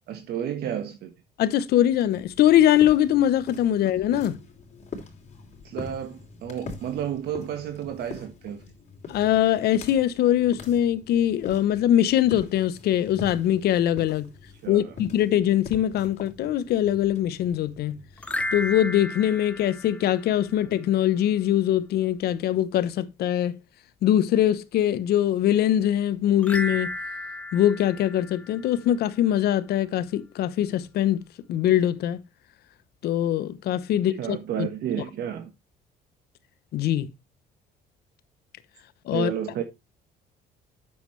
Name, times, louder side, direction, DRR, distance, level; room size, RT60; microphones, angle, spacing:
voice 1, 0.1-1.1 5.6-8.6 14.6-14.9 34.2-35.5 39.1-39.6, right 9 dB, 70° right, 1.4 m, -31 dB
voice 2, 1.4-4.4 9.1-14.3 14.7-18.0 18.5-23.6 24.0-26.9 27.5-31.2 31.5-32.2 33.0-34.7 36.7-37.1 39.1-39.3, left 11 dB, 70° left, 0.9 m, -22 dB
sound 1, 1.9-19.4, left 4 dB, 45° left, 3.3 m, -44 dB
sound 2, 18.2-20.7 26.4-29.0, left 1 dB, 5° left, 0.8 m, -34 dB
9.6 x 7.2 x 3.2 m
cardioid pair, 110°, 17 cm